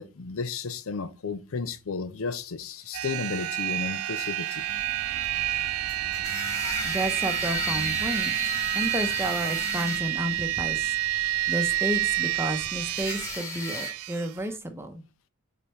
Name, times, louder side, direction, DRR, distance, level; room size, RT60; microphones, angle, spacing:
voice 1, 0.0-4.6, left 4 dB, 75° left, 0.6 m, -33 dB
sound 1, 2.9-14.3, right 15 dB, 90° right, 0.3 m, -29 dB
sound 2, 3.0-13.9, left 1 dB, 15° left, 1.8 m, -37 dB
sound 3, 4.7-13.4, right 2 dB, 45° right, 0.6 m, -46 dB
voice 2, 6.8-8.4 8.7-10.9 11.5-15.0, right 1 dB, 10° right, 0.8 m, -31 dB
5.2 x 4.1 x 4.4 m
head